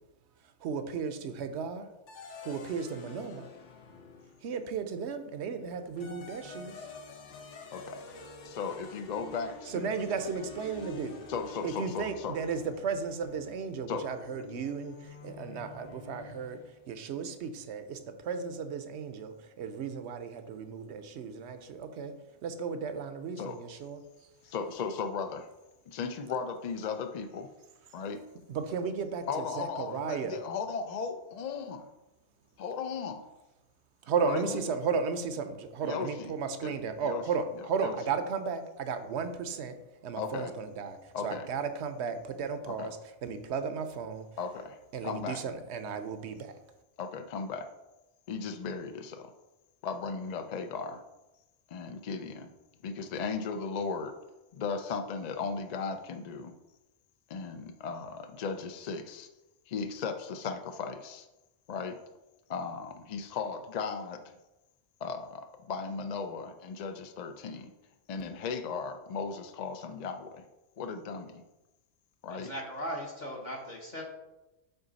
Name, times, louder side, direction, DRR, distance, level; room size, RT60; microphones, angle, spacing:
voice 1, 0.6-1.9 2.4-3.5 4.4-6.7 9.7-11.2 11.6-22.1 22.4-24.0 28.5-30.4 34.0-39.7 40.0-44.3 44.9-46.5, right 5 dB, 70° right, 9 dB, 0.9 m, -34 dB
sound 1, 2.1-4.6 5.7-16.8, left 4 dB, 80° left, 1.2 m, -47 dB
voice 2, 7.7-8.0 8.4-9.9 11.3-12.3 13.9-14.0 23.4-23.6 24.4-25.5 25.9-27.5 27.9-28.2 29.3-31.9 32.6-33.2 34.3-34.6 35.8-36.3 36.6-36.7 37.0-37.2 37.8-37.9 40.2-40.5 41.1-41.5 42.7-42.9 44.4-44.8 45.0-45.4 47.0-47.7 48.3-49.3 49.8-51.0 51.7-52.5 52.8-54.1 54.5-56.5 57.3-59.3 59.7-61.3 61.7-62.0 62.5-64.2 65.0-67.7 68.1-70.4 70.8-71.4 72.2-72.5, left 5 dB, 60° left, 7 dB, 0.4 m, -36 dB
voice 3, 72.3-74.1, equal, 40° left, -1 dB, 1.0 m, -38 dB
8.0 x 3.8 x 4.0 m, 1.0 s
omnidirectional pair, 1.2 m